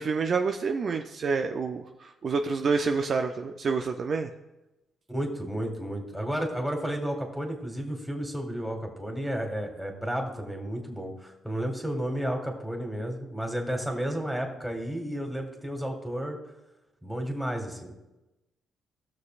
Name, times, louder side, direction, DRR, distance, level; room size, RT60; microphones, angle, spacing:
voice 1, 0.0-4.3, right 4 dB, 50° right, 5 dB, 0.5 m, -28 dB
voice 2, 5.1-16.4 17.0-17.9, equal, ahead, 2 dB, 1.9 m, -32 dB
17.5 x 6.4 x 2.5 m, 0.99 s
cardioid pair, 90°, 0 cm